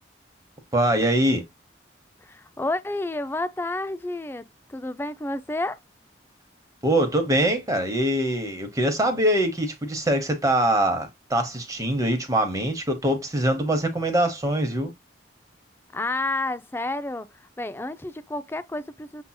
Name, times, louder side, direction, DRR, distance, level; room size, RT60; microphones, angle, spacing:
voice 1, 0.7-1.4 6.8-14.9, right 1 dB, 20° right, 0.9 m, -23 dB
voice 2, 2.2-5.8 15.9-19.2, left 2 dB, 10° left, 0.3 m, -30 dB
6.7 x 2.8 x 2.2 m
head